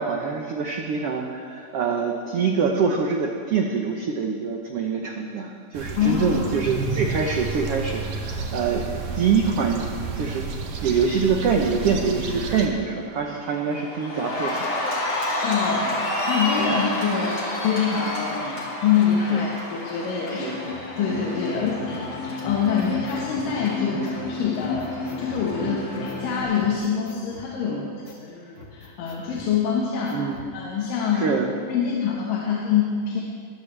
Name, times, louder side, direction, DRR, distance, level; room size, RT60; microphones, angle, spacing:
voice 1, 0.0-8.8 9.2-9.9 10.1-10.5 10.8-14.8 15.7-15.9 16.6-16.7 18.4-18.6 19.3-19.5 20.3-20.6 21.5-21.8 23.9-24.1 25.6-25.8 27.7-27.9 30.1-30.4 31.1-31.5, right 5 dB, 90° right, 1 dB, 1.3 m, -25 dB
sound 1, 5.7-12.7, right 4 dB, 60° right, 2.2 m, -31 dB
voice 2, 6.0-6.4 15.4-27.8 28.2-30.3 30.5-31.3 31.7-33.2, left 7 dB, 75° left, -3 dB, 3.0 m, -25 dB
Cheering, 11.8-11.9 12.3-26.4, left 2 dB, 30° left, 2.6 m, -30 dB
sound 2, 22.6-23.5 24.0-24.1 24.6-25.5 26.1-26.2 26.5-27.5 28.0-28.2 28.6-29.5 30.1-30.5, left 1 dB, 50° left, 0.7 m, -46 dB
20.5 x 14.0 x 3.4 m, 2.2 s
omnidirectional pair, 4.0 m